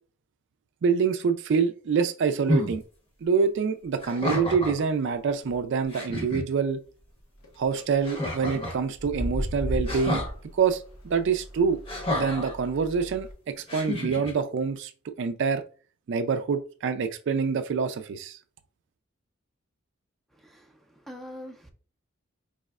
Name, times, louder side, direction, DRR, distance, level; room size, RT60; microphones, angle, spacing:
voice 1, 0.8-2.8 3.2-6.8 7.6-10.2 10.5-11.8 12.1-15.6 16.1-18.4, right 5 dB, 55° right, 0.4 m, -26 dB
sound 1, 2.5-2.8 4.0-4.8 5.5-5.6 5.9-6.4 8.0-8.8 9.9-10.3 11.9-12.5 13.7-14.3, left 1 dB, 25° left, 0.9 m, -29 dB
sound 2, 7.4-7.8 8.9-13.3, right 1 dB, 90° left, 1.1 m, -35 dB
voice 2, 20.3-21.7, left 1 dB, ahead, 0.5 m, -44 dB
4.7 x 3.1 x 2.3 m
head